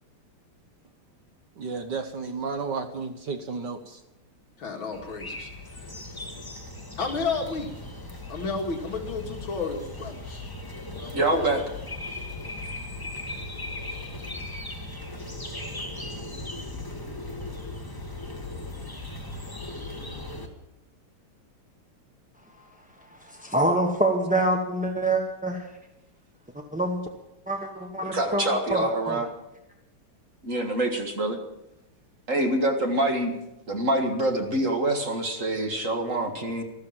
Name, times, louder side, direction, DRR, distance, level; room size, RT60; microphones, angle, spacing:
voice 1, 1.6-4.0, right 4 dB, 55° right, 7 dB, 1.5 m, -32 dB
voice 2, 4.6-5.5 7.0-7.7 8.3-10.5 10.9-11.5, left 4 dB, 65° left, 2 dB, 2.7 m, -32 dB
sound 1, 4.9-20.5, left 2 dB, 10° left, 1.6 m, -38 dB
voice 3, 11.1-11.6 28.1-29.3 30.4-31.4 32.3-33.3 33.7-36.6, right 1 dB, 35° right, 4 dB, 2.1 m, -25 dB
voice 4, 23.2-25.7 26.5-27.0 27.5-29.2, right 1 dB, 5° right, 1 dB, 0.8 m, -26 dB
13.5 x 13.5 x 7.4 m, 0.89 s
omnidirectional pair, 2.4 m